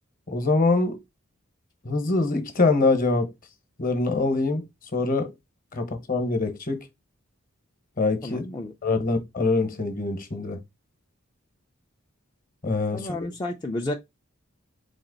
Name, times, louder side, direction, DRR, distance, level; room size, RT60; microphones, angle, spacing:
voice 1, 0.3-1.0 1.8-3.3 3.8-4.6 4.9-5.3 5.8-6.8 8.0-8.4 8.8-10.6 12.6-13.3, left 3 dB, 40° left, 1.0 m, -24 dB
voice 2, 8.2-8.7 12.9-13.9, left 1 dB, 20° left, 0.4 m, -31 dB
4.2 x 2.9 x 3.8 m
head